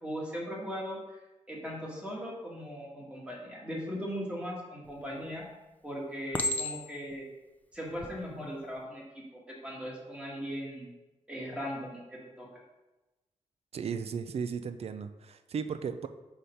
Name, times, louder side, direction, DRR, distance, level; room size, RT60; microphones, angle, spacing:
voice 1, 0.0-1.2 1.5-5.4 5.8-7.2 7.7-10.9 11.3-12.5, equal, 10° right, -3 dB, 1.5 m, -39 dB
Chink clink, 4.9-5.4 6.3-7.1 7.9-8.1, left 2 dB, 10° left, 0.4 m, -33 dB
voice 2, 13.7-16.1, right 6 dB, 55° right, 10 dB, 0.4 m, -35 dB
4.9 x 4.2 x 5.5 m, 1.1 s
wide cardioid pair, 170°, 13 cm